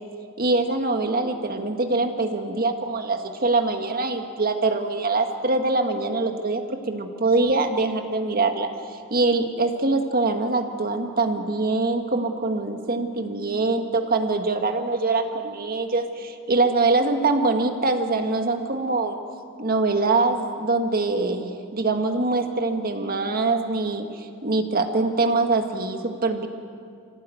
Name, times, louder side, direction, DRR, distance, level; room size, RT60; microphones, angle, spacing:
voice 1, 0.4-19.2 19.6-26.5, right 3 dB, 45° right, 6 dB, 1.7 m, -24 dB
25.5 x 16.5 x 9.2 m, 2.4 s
head